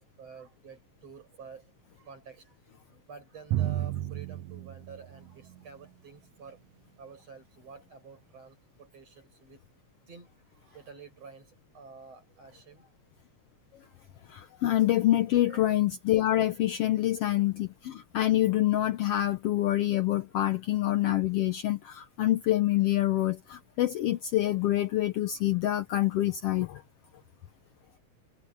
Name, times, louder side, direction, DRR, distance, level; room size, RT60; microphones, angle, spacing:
voice 1, 0.0-6.6 7.0-9.6 10.1-13.0 13.8-14.0 15.5-15.7 17.1-17.2 27.8-28.0, right 5 dB, 55° right, 8.7 m, -50 dB
Drum, 3.5-5.9, right 14 dB, 80° right, 1.7 m, -33 dB
voice 2, 14.3-26.8, left 14 dB, 75° left, 1.4 m, -26 dB
omnidirectional pair, 3.5 m